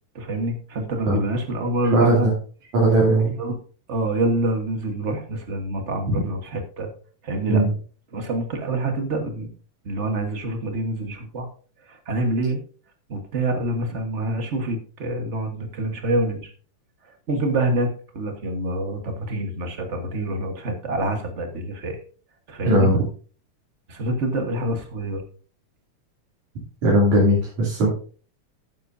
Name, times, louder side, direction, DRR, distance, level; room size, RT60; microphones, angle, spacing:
voice 1, 0.1-2.3 3.4-3.6 3.9-6.9 7.2-7.6 8.1-9.5 9.8-11.5 11.9-12.6 13.1-16.5 17.3-22.0 22.5-22.9 23.9-25.2, right 1 dB, 45° right, 4 dB, 0.9 m, -26 dB
voice 2, 1.9-2.3 2.7-3.4 7.5-7.7 22.6-22.9 26.8-27.9, right 1 dB, 65° right, -5 dB, 4.1 m, -18 dB
13.0 x 9.4 x 2.7 m, 0.40 s
omnidirectional pair, 3.5 m